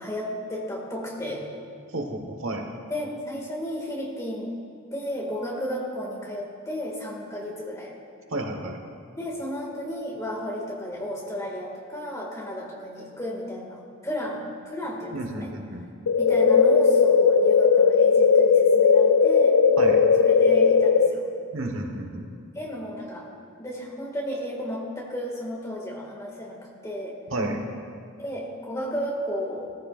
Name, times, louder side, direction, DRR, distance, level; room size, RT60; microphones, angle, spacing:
voice 1, 0.0-1.5 2.9-4.5 4.9-7.9 9.2-15.5 16.2-19.6 20.2-21.3 22.5-23.3 23.6-27.2 28.2-29.8, equal, 15° left, -2 dB, 1.9 m, -33 dB
voice 2, 1.9-2.7 8.3-8.8 15.1-15.9 19.8-20.0 21.5-22.3 27.3-27.6, right 1 dB, 70° right, 3 dB, 1.2 m, -31 dB
sound 1, 16.1-21.1, left 5 dB, 75° left, 0.5 m, -18 dB
17.0 x 14.5 x 2.4 m, 2.3 s
head